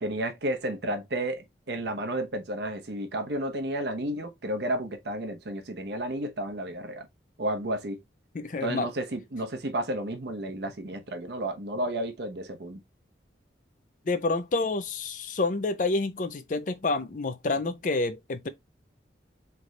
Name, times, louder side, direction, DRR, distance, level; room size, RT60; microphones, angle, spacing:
voice 1, 0.0-7.1 7.4-8.0 8.6-12.8, right 1 dB, 65° right, 0.8 m, -32 dB
voice 2, 8.3-8.9 14.1-18.5, left 3 dB, 45° left, 0.5 m, -28 dB
3.9 x 3.4 x 3.1 m
head